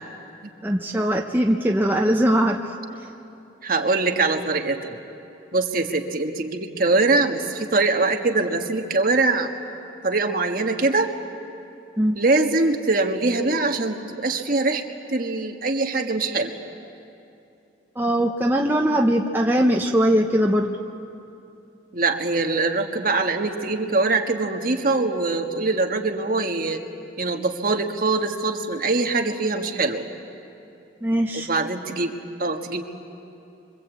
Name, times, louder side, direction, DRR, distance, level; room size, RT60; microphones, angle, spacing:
voice 1, 0.6-2.8 12.0-12.2 18.0-20.7 31.0-31.5, equal, 10° right, 1 dB, 0.8 m, -21 dB
voice 2, 3.6-5.0 5.5-9.5 10.0-11.1 12.1-14.8 15.1-16.6 21.9-26.8 27.2-30.0 31.3-32.1 32.4-32.8, right 3 dB, 50° right, 3 dB, 1.6 m, -23 dB
27.0 x 25.0 x 8.4 m, 2.7 s
head